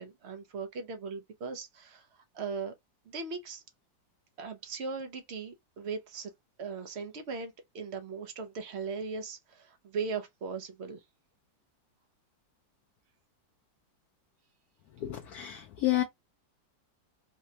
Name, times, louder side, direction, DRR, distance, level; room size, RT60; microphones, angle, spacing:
voice 1, 0.0-2.1 2.3-2.7 3.1-3.6 4.4-6.3 6.6-11.0, right 5 dB, 85° right, 0.5 m, -38 dB
voice 2, 15.0-16.0, left 15 dB, 70° left, 0.9 m, -30 dB
4.1 x 2.1 x 2.7 m
omnidirectional pair, 2.0 m